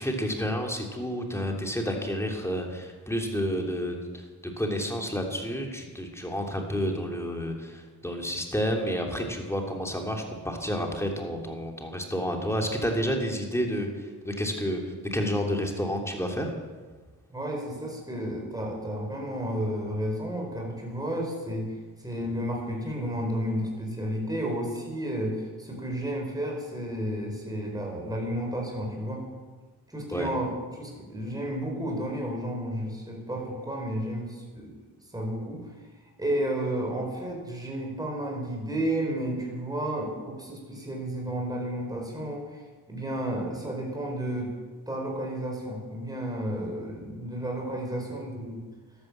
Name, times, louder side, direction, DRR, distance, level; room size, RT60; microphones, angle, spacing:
voice 1, 0.0-4.2 4.6-14.8 15.1-16.5 30.1-30.3, equal, 5° left, 2 dB, 3.0 m, -30 dB
voice 2, 17.3-21.7 22.0-29.2 29.9-34.7 35.1-35.7 36.2-44.5 44.9-48.6, right 1 dB, 10° right, 0 dB, 4.8 m, -32 dB
13.0 x 11.5 x 7.4 m, 1.4 s
cardioid pair, 75°, 39 cm